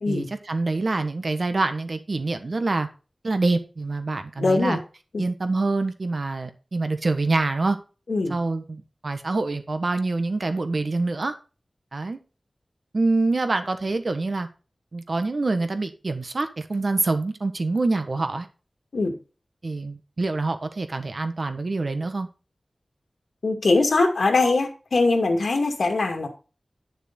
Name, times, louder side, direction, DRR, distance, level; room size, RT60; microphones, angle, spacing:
voice 1, 0.1-2.9 3.2-4.8 5.2-7.8 8.3-11.3 11.9-12.2 12.9-14.5 14.9-18.5 19.6-22.3, right 3 dB, 60° right, 8 dB, 1.4 m, -26 dB
voice 2, 4.4-4.8 5.1-5.3 8.1-8.3 18.9-19.2 23.4-26.3, left 3 dB, 90° left, 4 dB, 2.2 m, -22 dB
10.5 x 6.7 x 4.0 m, 0.33 s
wide cardioid pair, 65°, 0 cm